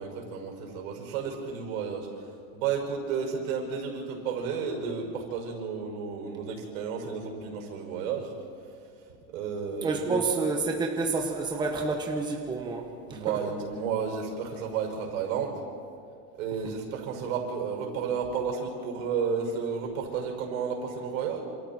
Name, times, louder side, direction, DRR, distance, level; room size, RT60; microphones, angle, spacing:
voice 1, 0.0-2.1 2.5-8.3 9.3-10.2 13.1-15.6 16.4-21.4, right 6 dB, 85° right, 2 dB, 6.0 m, -32 dB
voice 2, 9.8-13.4, right 3 dB, 10° right, 1 dB, 1.4 m, -29 dB
28.0 x 27.5 x 4.5 m, 2.4 s
cardioid pair, 175°, 40 cm